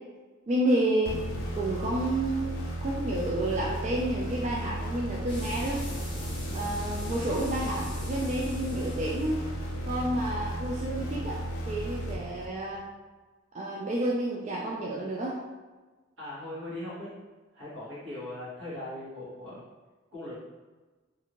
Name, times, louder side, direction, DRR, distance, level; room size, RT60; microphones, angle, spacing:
voice 1, 0.5-1.2 1.5-5.8 6.5-9.4 9.9-11.4 11.7-12.8 13.5-15.4, right 1 dB, 35° right, -4 dB, 0.3 m, -30 dB
sound 1, 1.1-12.8, right 1 dB, 75° left, 0.5 m, -35 dB
sound 2, 5.3-11.8, left 1 dB, 25° left, 0.6 m, -43 dB
voice 2, 16.2-17.2 17.5-19.6 20.1-20.4, left 1 dB, 70° right, -8 dB, 1.3 m, -39 dB
2.5 x 2.5 x 2.9 m, 1.3 s
head